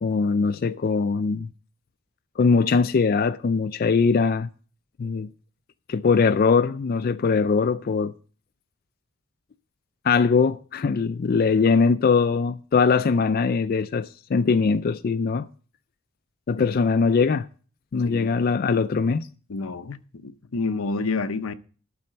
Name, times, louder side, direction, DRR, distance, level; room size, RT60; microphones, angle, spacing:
voice 1, 0.0-1.5 2.4-4.5 5.0-5.3 5.9-8.1 10.0-15.5 16.5-17.5 17.9-19.3, left 5 dB, 45° left, 0.4 m, -21 dB
voice 2, 19.5-21.5, left 3 dB, 90° left, 0.7 m, -29 dB
12.0 x 4.2 x 7.8 m
head